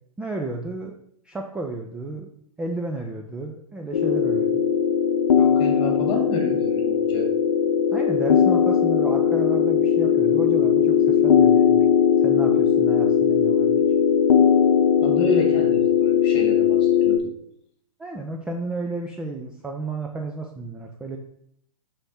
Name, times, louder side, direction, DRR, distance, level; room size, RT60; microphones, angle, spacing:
voice 1, 0.2-0.9 1.2-2.3 2.6-4.6 7.9-11.9 12.2-13.8 18.0-21.2, right 2 dB, 5° right, 2 dB, 0.3 m, -32 dB
sound 1, 3.9-17.2, left 7 dB, 85° left, 0.7 m, -19 dB
voice 2, 5.4-7.3 15.0-17.3, left 2 dB, 30° left, 2 dB, 1.8 m, -30 dB
7.0 x 3.5 x 4.1 m, 0.69 s
hypercardioid pair, 125°, 18 cm